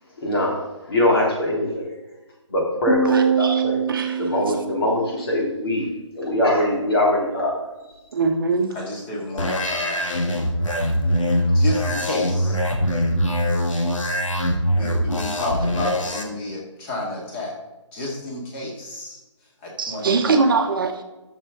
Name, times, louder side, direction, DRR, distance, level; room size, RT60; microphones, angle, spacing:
voice 1, 0.2-0.6 0.9-1.9 2.5-3.8 4.2-5.9 6.1-7.5, left 1 dB, 50° left, -1 dB, 3.3 m, -22 dB
sound 1, 2.9-5.3, right 6 dB, ahead, 2.1 m, -23 dB
voice 2, 3.1-3.6 3.9-4.3 8.1-8.7 19.8-21.0, right 4 dB, 45° right, 5 dB, 1.0 m, -22 dB
voice 3, 8.7-10.0 11.5-12.6 13.6-13.7 14.7-17.5 17.9-19.2 19.6-20.4, left 2 dB, 20° left, -2 dB, 2.2 m, -31 dB
sound 2, 9.4-16.2, equal, 85° left, 1.8 m, -22 dB
12.0 x 7.0 x 3.8 m, 1.1 s
hypercardioid pair, 160°, 16 cm